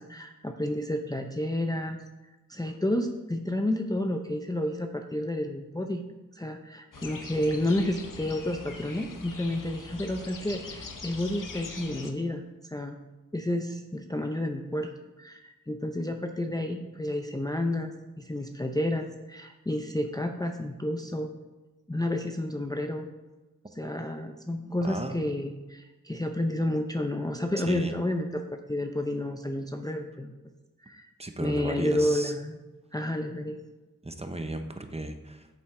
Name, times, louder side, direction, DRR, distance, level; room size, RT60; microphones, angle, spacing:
voice 1, 0.0-2.0 2.5-6.0 6.4-12.9 13.3-14.9 15.2-21.3 21.9-23.1 23.8-30.3 30.8-31.1 31.4-32.6 32.9-33.6, left 1 dB, 10° left, 4 dB, 0.6 m, -30 dB
sound 1, 6.9-12.1, left 4 dB, 75° left, 1.0 m, -42 dB
voice 2, 24.8-25.2 27.6-27.9 31.2-32.3 34.0-35.5, right 1 dB, 20° right, 7 dB, 0.8 m, -35 dB
9.1 x 7.1 x 3.7 m, 1.1 s
wide cardioid pair, 90°, 32 cm